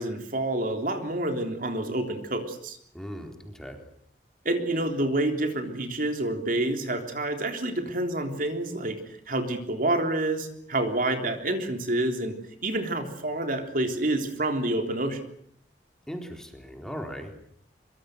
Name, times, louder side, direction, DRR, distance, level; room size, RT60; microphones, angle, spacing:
voice 1, 0.0-2.8 4.5-12.4 12.6-15.2, right 1 dB, 50° right, 5 dB, 3.5 m, -28 dB
voice 2, 2.9-3.8 16.1-17.3, equal, 5° left, 3 dB, 4.0 m, -38 dB
24.5 x 24.5 x 8.0 m, 0.66 s
head